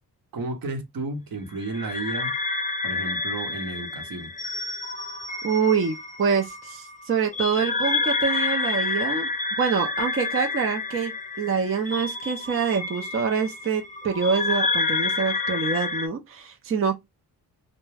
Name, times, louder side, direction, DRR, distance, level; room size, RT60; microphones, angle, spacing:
voice 1, 0.3-2.3 2.8-4.3, right 2 dB, 60° right, 0.9 m, -32 dB
sound 1, 1.6-16.1, left 3 dB, 20° left, 0.5 m, -29 dB
voice 2, 5.4-9.3 9.6-16.9, right 6 dB, 35° right, 0.5 m, -25 dB
2.3 x 2.1 x 3.2 m
cardioid pair, 65°, 39 cm